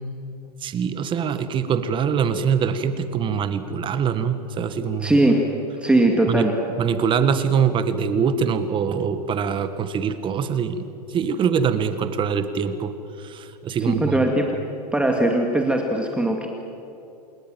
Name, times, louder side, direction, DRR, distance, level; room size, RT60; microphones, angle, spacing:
voice 1, 0.6-5.1 6.3-6.5 6.8-10.8 11.1-14.2, right 7 dB, 25° right, 11 dB, 1.8 m, -23 dB
voice 2, 5.0-5.5 5.8-6.5 13.8-14.5 14.9-16.5, right 1 dB, 5° right, 2 dB, 2.2 m, -20 dB
28.0 x 20.0 x 7.8 m, 2.9 s
hypercardioid pair, 135°, 21 cm